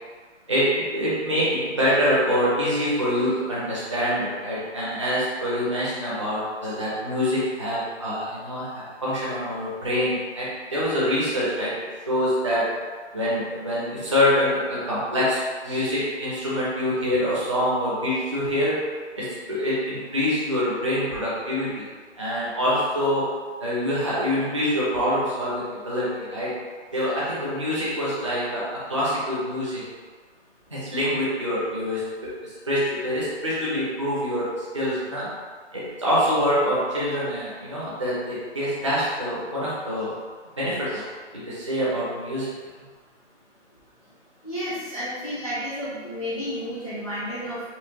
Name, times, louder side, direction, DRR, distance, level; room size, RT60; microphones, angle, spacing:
voice 1, 0.5-11.8 12.1-12.8 13.1-18.8 19.2-21.9 22.2-26.6 26.9-29.8 30.7-35.3 35.7-40.1 40.6-41.0 41.3-42.5, equal, 25° right, -8 dB, 0.5 m, -25 dB
voice 2, 44.4-47.6, equal, 35° left, -9 dB, 0.4 m, -31 dB
4.3 x 2.1 x 2.6 m, 1.5 s
hypercardioid pair, 165°, 36 cm